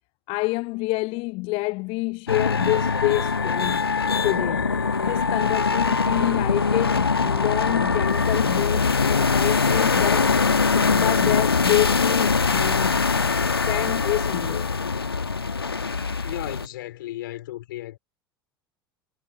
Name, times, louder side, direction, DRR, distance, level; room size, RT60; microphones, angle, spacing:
voice 1, 0.3-4.7 5.0-14.7, left 25 dB, 45° left, 0.7 m, -28 dB
sound 1, 2.3-16.7, left 4 dB, 85° left, 1.5 m, -22 dB
voice 2, 16.2-18.0, left 15 dB, 65° left, 4.8 m, -34 dB
figure-of-eight pair, 75°, 12 cm